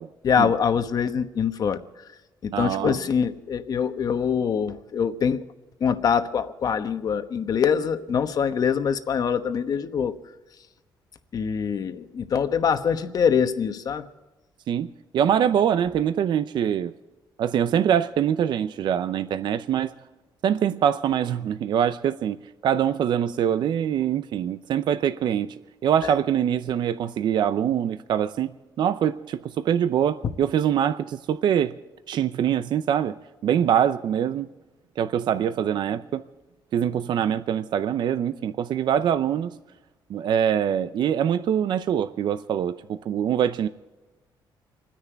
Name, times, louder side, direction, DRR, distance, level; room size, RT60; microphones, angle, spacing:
voice 1, 0.2-2.1 2.4-5.5 5.8-10.2 11.3-14.1 26.0-26.1, left 7 dB, 50° left, 1.1 m, -24 dB
voice 2, 2.5-3.0 14.7-16.9 17.4-19.9 20.4-22.4 22.6-31.8 32.1-33.2 33.4-34.5 35.0-36.2 36.7-39.5 40.1-43.7, right 9 dB, 65° right, 0.6 m, -24 dB
28.0 x 10.0 x 4.6 m
cardioid pair, 135°, 8 cm